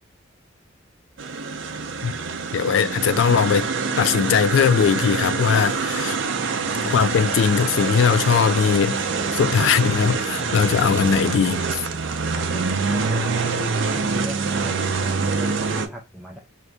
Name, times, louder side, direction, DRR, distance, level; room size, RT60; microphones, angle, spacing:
sound 1, 1.2-15.9, right 4 dB, 70° right, 0.5 m, -25 dB
voice 1, 2.5-6.2 6.9-11.9, left 7 dB, 70° left, 0.3 m, -20 dB
voice 2, 12.3-16.4, equal, 5° right, 0.4 m, -37 dB
2.8 x 2.5 x 3.4 m
head